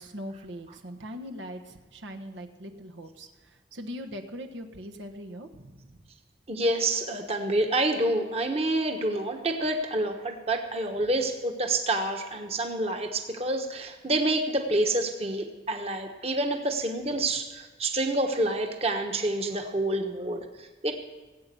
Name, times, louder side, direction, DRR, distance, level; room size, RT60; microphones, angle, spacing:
voice 1, 0.0-6.0, equal, 85° right, 4 dB, 1.3 m, -41 dB
voice 2, 6.5-20.9, right 1 dB, 35° right, 4 dB, 1.3 m, -28 dB
18.0 x 8.8 x 7.0 m, 1.3 s
head